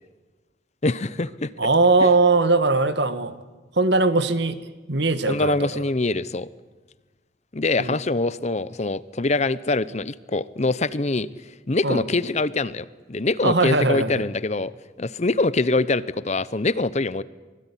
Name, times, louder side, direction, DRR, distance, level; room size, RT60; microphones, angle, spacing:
voice 1, 0.8-1.5 5.3-6.5 7.5-11.3 11.7-14.7 15.0-17.2, left 2 dB, 35° left, 17 dB, 0.7 m, -24 dB
voice 2, 1.6-3.3 3.7-4.6 4.9-5.8 7.8-8.0 11.8-12.0 13.4-14.3, right 3 dB, 60° right, 12 dB, 1.7 m, -20 dB
25.5 x 20.0 x 10.0 m, 1.3 s
head